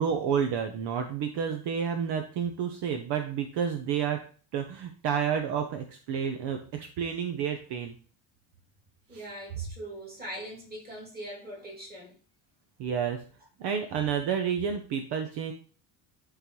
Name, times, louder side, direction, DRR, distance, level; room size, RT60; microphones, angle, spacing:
voice 1, 0.0-4.2 4.5-7.9 9.1-9.2 12.8-13.2 13.6-15.5, right 7 dB, 60° right, 6 dB, 0.9 m, -30 dB
voice 2, 9.1-12.1, right 1 dB, 20° right, -3 dB, 2.7 m, -41 dB
11.0 x 3.9 x 3.1 m, 0.40 s
cardioid pair, 145°, 47 cm